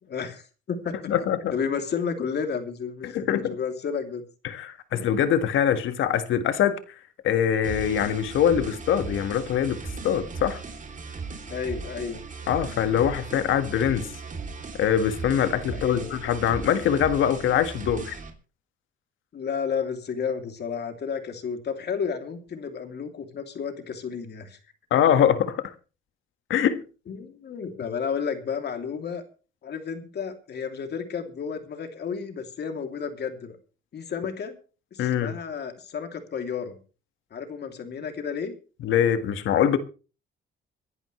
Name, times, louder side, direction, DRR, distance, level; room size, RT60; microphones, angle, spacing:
voice 1, 0.0-1.1 1.5-4.2 4.9-5.0 11.5-12.2 15.7-16.1 19.3-24.6 27.1-29.2 29.6-33.6 33.9-34.6 34.9-36.8 37.3-38.5, left 6 dB, 55° left, 2.9 m, -32 dB
voice 2, 1.1-1.5 3.0-3.5 4.4-6.8 7.2-9.8 10.0-10.6 12.5-14.1 14.7-18.2 24.9-25.7 26.5-26.8 35.0-35.4 38.8-39.8, left 9 dB, 80° left, 1.7 m, -23 dB
sound 1, 7.6-18.3, right 4 dB, 40° right, 3.0 m, -37 dB
25.5 x 11.0 x 3.2 m
cardioid pair, 90°, 20 cm